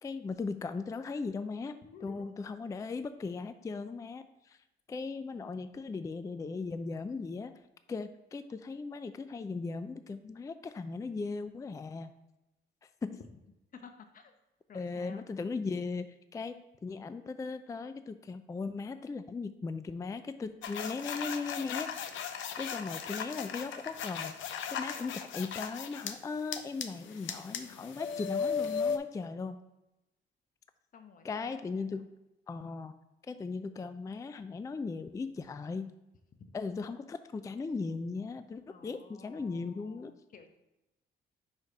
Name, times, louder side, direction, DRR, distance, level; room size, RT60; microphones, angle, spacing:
voice 1, 0.0-4.6 4.9-7.5 7.9-12.1 12.8-13.2 14.7-21.9 22.6-29.6 31.2-32.1 32.5-33.0 33.3-35.9 36.5-40.1, left 4 dB, 15° left, 11 dB, 0.3 m, -38 dB
voice 2, 1.8-2.3 13.7-14.3 14.7-15.3 30.9-32.0 38.7-40.5, left 5 dB, 45° left, 6 dB, 0.8 m, -54 dB
sound 1, 20.6-26.1 26.5-29.0, left 6 dB, 75° left, 0.6 m, -36 dB
5.2 x 4.1 x 4.8 m, 0.95 s
cardioid pair, 90°, 20 cm